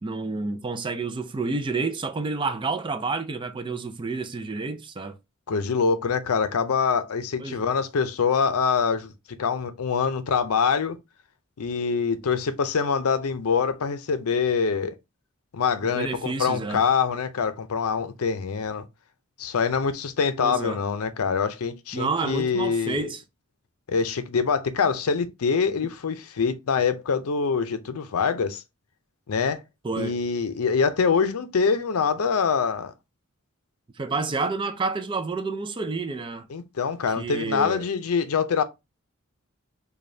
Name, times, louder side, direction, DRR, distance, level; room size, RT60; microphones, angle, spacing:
voice 1, 0.0-5.1 7.4-7.6 15.8-16.8 20.4-20.8 21.9-23.2 29.8-30.2 34.0-36.5 37.2-37.9, right 3 dB, 20° right, 0.3 m, -29 dB
voice 2, 5.5-9.1 9.4-11.0 11.6-14.9 15.5-18.8 19.4-23.1 23.9-28.6 29.3-29.6 30.0-32.9 36.5-38.6, left 5 dB, 85° left, 0.5 m, -24 dB
5.0 x 2.3 x 2.6 m
head